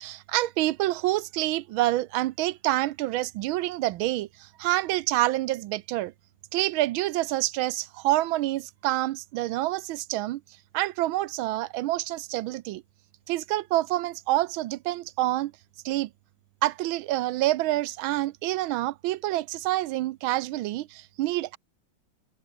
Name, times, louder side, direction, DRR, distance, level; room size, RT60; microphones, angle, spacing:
voice 1, 0.0-6.1 6.5-10.4 10.7-12.8 13.3-15.5 15.8-16.1 16.6-21.6, right 16 dB, 85° right, 1.4 m, -27 dB
open air
omnidirectional pair, 2.2 m